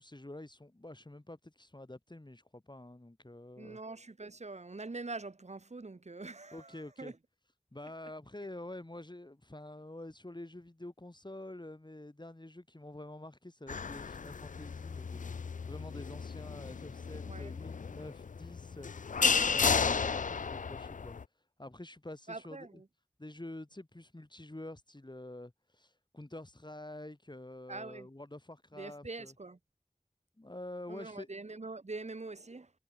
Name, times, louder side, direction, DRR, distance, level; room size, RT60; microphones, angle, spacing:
voice 1, 0.0-3.8 6.5-7.1 7.7-21.2 21.6-22.8 23.2-29.3 30.4-31.3, left 1 dB, 35° left, 4.9 m, -47 dB
voice 2, 3.6-7.1 17.2-17.5 22.3-22.9 27.7-28.1 28.8-29.6 30.9-32.7, right 3 dB, 60° right, 1.2 m, -44 dB
sound 1, 13.7-21.2, left 5 dB, 80° left, 0.4 m, -33 dB
wide cardioid pair, 45°, 13 cm